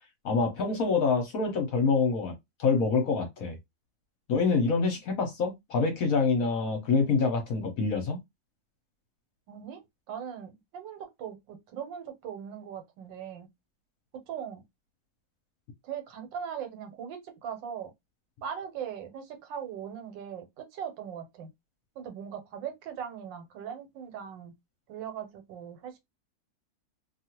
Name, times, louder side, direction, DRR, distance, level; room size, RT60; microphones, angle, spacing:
voice 1, 0.2-2.3 2.6-3.5 4.3-8.2, left 4 dB, 60° left, 1.0 m, -26 dB
voice 2, 9.5-9.8 10.1-13.5 14.1-14.6 15.8-17.9 18.4-21.5 22.0-24.5 24.9-26.0, right 8 dB, 85° right, 1.5 m, -39 dB
2.8 x 2.4 x 2.9 m
omnidirectional pair, 2.0 m